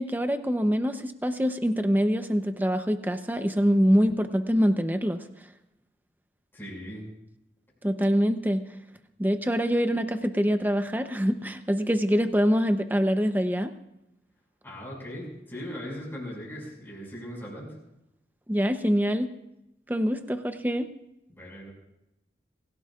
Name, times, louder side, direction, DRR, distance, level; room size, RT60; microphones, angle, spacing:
voice 1, 0.0-5.2 7.8-8.6 9.2-13.7 18.5-19.3 19.9-20.9, equal, 10° right, 8 dB, 0.8 m, -24 dB
voice 2, 6.5-7.1 14.6-17.7 21.3-21.7, equal, 10° left, -3 dB, 5.9 m, -39 dB
27.5 x 16.5 x 2.5 m, 0.88 s
head